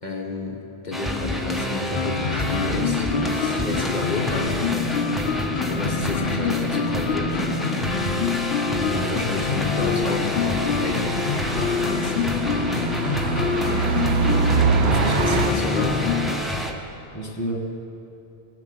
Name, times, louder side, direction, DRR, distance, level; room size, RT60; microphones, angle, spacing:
voice 1, 0.0-5.1 5.7-7.4 8.7-11.2 11.5-12.7 14.8-16.1, left 3 dB, 45° left, 0 dB, 1.4 m, -31 dB
sound 1, 0.9-16.7, equal, ahead, 1.0 m, -27 dB
sound 2, 2.0-16.4, left 8 dB, 70° left, 0.8 m, -27 dB
sound 3, 7.3-7.4 10.0-15.5, right 6 dB, 75° right, 0.9 m, -25 dB
voice 2, 16.7-17.6, right 1 dB, 15° left, -1 dB, 1.3 m, -32 dB
19.0 x 7.4 x 7.9 m, 2.9 s
omnidirectional pair, 1.1 m